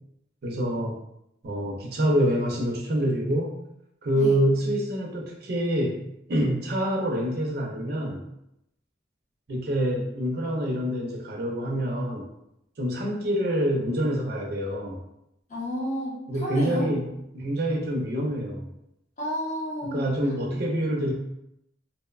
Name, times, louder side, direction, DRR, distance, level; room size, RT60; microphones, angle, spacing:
voice 1, 0.4-1.0 1.4-3.5 4.0-6.0 6.3-8.2 9.5-12.3 12.8-15.0 16.3-18.7 19.8-21.1, equal, 55° right, -1 dB, 0.5 m, -26 dB
voice 2, 15.5-16.9 19.2-20.1, equal, 40° left, -5 dB, 0.7 m, -31 dB
2.7 x 2.0 x 2.3 m, 0.81 s
head